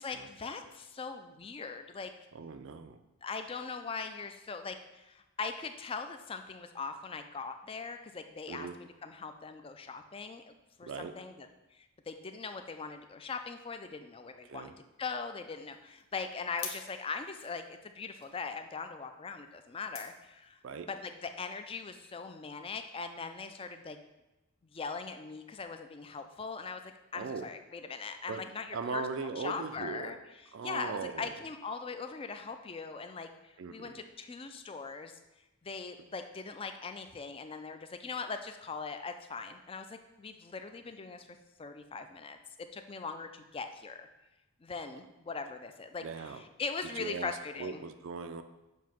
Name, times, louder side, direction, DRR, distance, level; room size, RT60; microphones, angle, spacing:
voice 1, 0.0-2.1 3.2-10.5 10.8-11.5 11.8-14.7 15.0-20.6 21.0-24.0 24.7-30.2 30.6-35.2 35.6-41.3 41.6-44.1 44.6-47.8, left 4 dB, 25° left, 7 dB, 0.3 m, -41 dB
voice 2, 2.3-3.0 8.5-8.8 10.8-11.1 14.4-14.8 20.6-20.9 27.1-27.5 28.3-28.4 28.7-30.2 30.5-31.4 33.6-34.0 46.0-46.4 47.0-47.3 47.6-48.4, right 4 dB, 55° right, 9 dB, 0.4 m, -39 dB
sound 1, 15.3-20.9, left 6 dB, 60° left, 1.0 m, -50 dB
7.2 x 2.8 x 5.8 m, 1.0 s
head